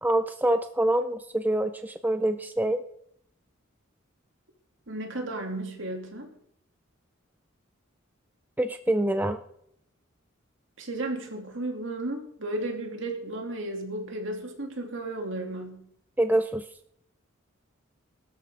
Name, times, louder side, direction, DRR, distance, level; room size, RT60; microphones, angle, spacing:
voice 1, 0.0-2.8 8.6-9.4 16.2-16.6, right 1 dB, 10° right, 9 dB, 0.5 m, -25 dB
voice 2, 4.9-6.3 10.8-15.9, right 2 dB, 65° right, 2 dB, 3.0 m, -34 dB
21.0 x 12.5 x 3.8 m, 0.72 s
head